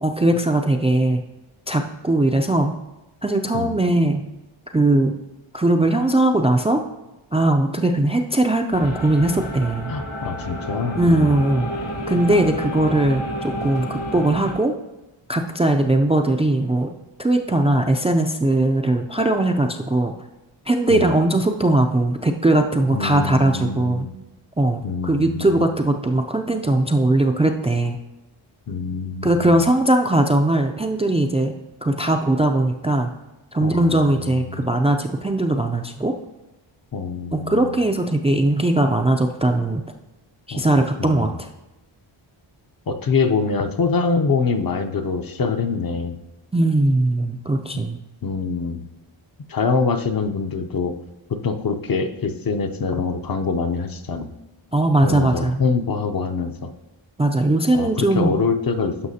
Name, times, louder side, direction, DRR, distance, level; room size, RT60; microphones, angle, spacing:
voice 1, 0.0-1.2 1.7-2.7 3.2-4.2 4.7-5.1 5.5-6.8 7.3-9.9 11.0-11.7 12.1-14.7 15.3-16.9 17.2-20.1 20.7-24.1 24.6-28.0 29.2-31.5 31.8-33.1 33.5-36.2 37.3-39.8 40.5-41.3 46.5-48.0 54.7-55.6 57.2-58.3, right 2 dB, 15° right, 4 dB, 0.4 m, -19 dB
sound 1, 8.7-14.5, equal, 90° left, 1.9 m, -30 dB
voice 2, 9.9-11.4 20.9-21.1 22.9-24.1 24.8-25.7 28.7-29.6 33.6-34.7 36.9-37.7 40.5-40.6 41.0-41.4 42.9-46.2 48.2-48.9 49.5-50.9 51.3-54.3 55.0-56.7 57.7-58.9, left 5 dB, 45° left, 6 dB, 0.7 m, -24 dB
11.0 x 5.7 x 2.8 m, 1.0 s
cardioid pair, 80°, 48 cm